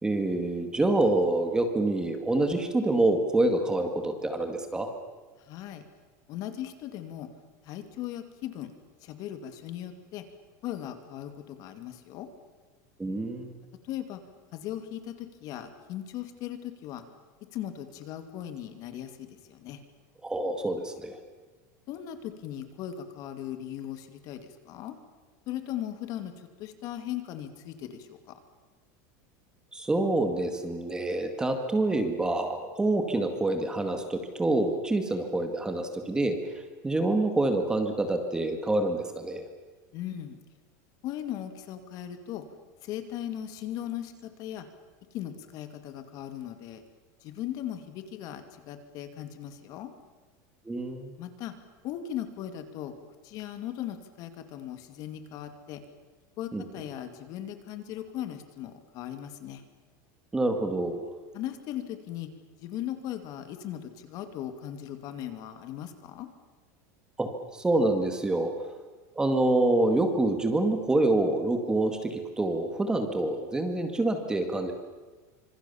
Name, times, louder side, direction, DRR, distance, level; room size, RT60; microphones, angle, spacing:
voice 1, 0.0-4.9 13.0-13.5 20.2-21.2 29.7-36.4 36.8-39.4 50.7-51.1 56.5-56.6 60.3-61.0 67.2-68.5 69.2-74.7, right 2 dB, 10° right, 6 dB, 2.0 m, -26 dB
voice 2, 5.4-5.8 6.3-7.3 7.6-8.7 9.0-10.2 10.6-12.3 13.8-14.2 14.5-17.0 17.5-19.8 21.9-25.0 25.5-28.3 39.9-40.4 41.0-42.4 42.8-44.7 45.1-46.8 47.2-49.9 51.2-51.5 51.8-52.9 53.2-55.8 56.4-59.6 61.3-62.3 62.6-66.3, left 11 dB, 40° left, 8 dB, 2.4 m, -38 dB
26.5 x 26.0 x 7.1 m, 1.3 s
supercardioid pair, 165°, 9 cm